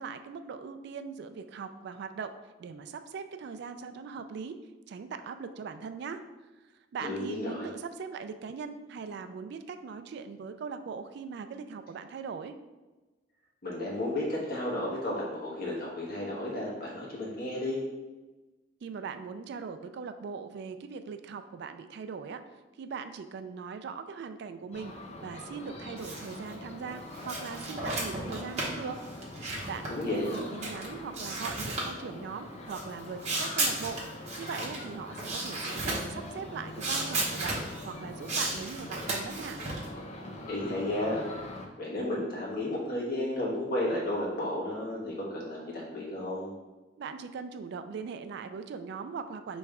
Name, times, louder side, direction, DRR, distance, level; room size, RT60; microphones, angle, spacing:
voice 1, 0.0-2.3 2.6-4.6 4.9-6.2 6.9-12.6 18.8-22.4 22.8-24.9 25.2-29.0 29.4-34.0 34.4-39.6 47.0-49.6, right 5 dB, 60° right, 9 dB, 0.3 m, -40 dB
voice 2, 7.0-7.7 13.6-17.9 29.9-30.4 40.5-41.2 41.8-46.5, left 1 dB, 55° left, -4 dB, 1.3 m, -33 dB
sound 1, 24.7-41.7, left 1 dB, 35° left, 0.5 m, -43 dB
sound 2, 26.0-26.5 26.9-30.9 31.1-31.9 32.7-34.8 35.2-36.1 36.8-37.9 38.2-39.9, right 2 dB, 40° right, 1.0 m, -34 dB
3.3 x 3.1 x 4.8 m, 1.2 s
head